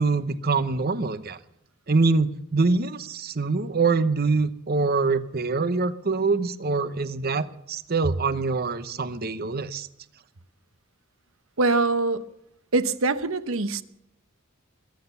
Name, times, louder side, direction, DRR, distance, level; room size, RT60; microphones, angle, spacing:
voice 1, 0.0-1.4 1.9-9.9, right 4 dB, 45° right, 14 dB, 0.8 m, -24 dB
voice 2, 11.6-12.2 12.7-13.8, right 3 dB, 70° right, 13 dB, 0.9 m, -23 dB
22.0 x 9.0 x 6.9 m, 0.79 s
head